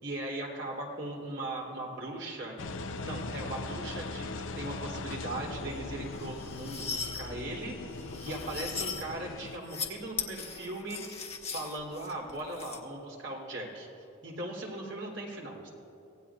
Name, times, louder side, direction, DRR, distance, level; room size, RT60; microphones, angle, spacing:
voice 1, 0.0-2.5 3.0-11.0 11.4-13.9 14.2-15.7, right 1 dB, 60° right, -2 dB, 3.3 m, -39 dB
Engine, 2.6-9.6, left 3 dB, 70° left, 0.7 m, -39 dB
sound 1, 6.2-7.2 8.0-9.1 9.5-9.9 10.2-12.8, left 6 dB, 30° left, 1.3 m, -38 dB
24.5 x 17.5 x 2.5 m, 2.8 s
head